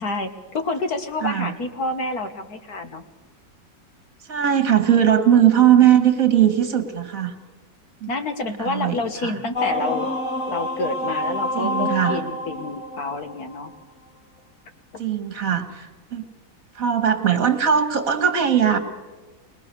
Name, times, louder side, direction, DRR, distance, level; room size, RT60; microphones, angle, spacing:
voice 1, 0.0-3.0 8.1-10.1 10.5-13.7 14.9-15.0, left 2 dB, 55° left, 7 dB, 1.9 m, -28 dB
voice 2, 1.2-1.5 4.3-7.3 8.0-8.1 8.6-9.3 11.5-12.2 15.0-16.3 16.7-18.8, right 9 dB, 50° right, 8 dB, 2.2 m, -19 dB
sound 1, 9.5-13.8, left 2 dB, 30° left, 1.5 m, -27 dB
22.5 x 20.5 x 6.9 m, 1.3 s
omnidirectional pair, 2.0 m